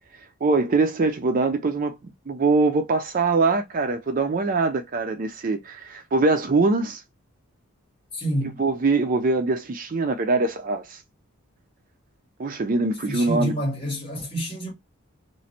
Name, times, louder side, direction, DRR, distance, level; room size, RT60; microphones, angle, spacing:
voice 1, 0.4-2.0 2.3-7.0 8.6-11.0 12.4-13.5, right 3 dB, 40° right, 0.4 m, -23 dB
voice 2, 8.1-8.6 13.1-14.7, equal, 25° left, 1.5 m, -28 dB
3.1 x 2.5 x 4.2 m
head